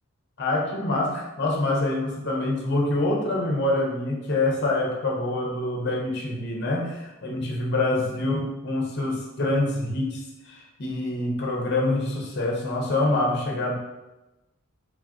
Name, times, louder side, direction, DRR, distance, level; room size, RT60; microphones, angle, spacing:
voice 1, 0.4-13.8, left 2 dB, 50° left, -1 dB, 0.5 m, -26 dB
3.1 x 2.4 x 2.3 m, 1.0 s
head